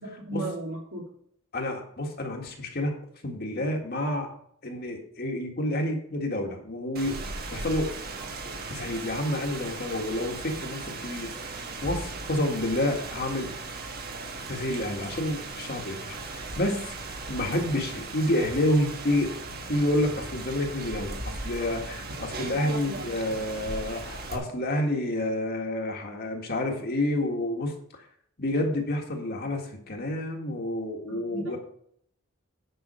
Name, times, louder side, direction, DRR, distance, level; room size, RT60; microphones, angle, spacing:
voice 1, 0.0-1.1 22.4-23.1 23.5-23.7 31.1-31.6, right 1 dB, 80° right, 0 dB, 2.8 m, -36 dB
voice 2, 1.5-2.9 3.2-4.3 4.6-7.2 7.5-7.9 8.7-11.5 11.8-13.5 14.5-16.9 17.3-19.3 19.7-28.0 28.4-31.6, left 1 dB, 50° left, 2 dB, 1.7 m, -29 dB
Rain, 7.0-24.4, right 3 dB, 45° right, 1.3 m, -37 dB
9.5 x 5.6 x 5.5 m, 0.67 s
head